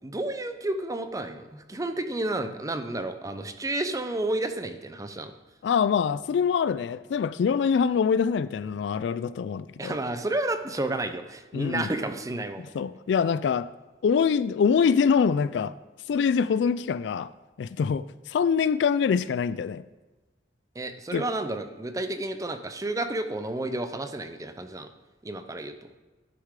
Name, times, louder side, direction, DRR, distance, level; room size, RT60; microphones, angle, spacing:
voice 1, 0.0-5.3 9.8-12.6 20.8-24.9 25.2-25.9, right 2 dB, 20° right, 0.6 m, -31 dB
voice 2, 5.6-10.0 11.5-11.9 12.7-13.7 14.0-15.7 16.1-17.3 17.6-19.8 21.1-21.2, left 6 dB, 70° left, 0.3 m, -24 dB
11.5 x 6.5 x 3.7 m
head